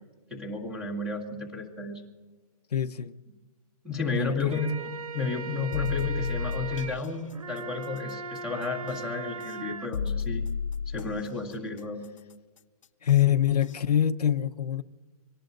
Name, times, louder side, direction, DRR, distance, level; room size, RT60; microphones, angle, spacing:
voice 1, 0.3-2.0 3.8-10.4 10.9-12.0, left 3 dB, 5° right, -1 dB, 1.9 m, -32 dB
voice 2, 2.7-3.2 4.1-4.6 13.0-14.8, left 10 dB, 90° left, 7 dB, 0.9 m, -25 dB
sound 1, 4.3-9.9, right 4 dB, 65° right, 1.0 m, -39 dB
sound 2, 5.7-7.0 8.9-9.0 9.9-11.3 13.1-13.2 13.7-13.8, left 6 dB, 55° left, 0.6 m, -31 dB
25.5 x 18.5 x 2.6 m, 1.3 s
hypercardioid pair, 175°, 20 cm